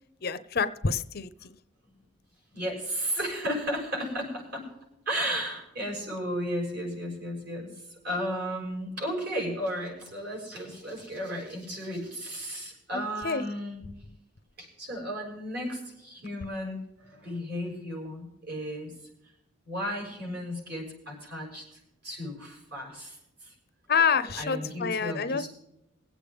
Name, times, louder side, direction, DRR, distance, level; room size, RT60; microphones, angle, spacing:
voice 1, 0.2-1.6 12.9-13.4 23.9-25.5, left 6 dB, 50° left, 12 dB, 0.6 m, -28 dB
voice 2, 2.5-4.7 5.1-13.8 14.6-19.0 19.7-23.6 24.3-25.5, equal, 55° right, -1 dB, 6.0 m, -34 dB
22.5 x 8.3 x 3.5 m, 0.87 s
head